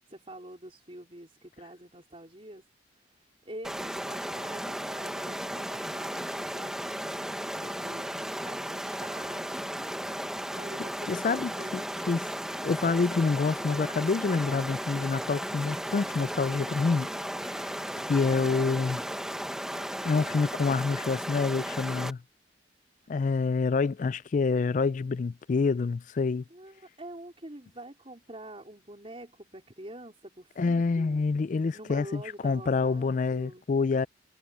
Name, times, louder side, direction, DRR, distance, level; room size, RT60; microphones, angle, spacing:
voice 1, 0.1-2.6 2.9-11.8 18.3-18.8 26.5-31.2 31.7-33.7, right 1 dB, 30° right, 4.1 m, -46 dB
Stream, 3.6-22.1, equal, 5° right, 1.2 m, -35 dB
voice 2, 11.1-12.3 12.6-17.1 17.4-17.7 18.1-19.0 20.0-22.2 23.1-26.4 30.6-34.1, left 4 dB, 40° left, 0.3 m, -27 dB
head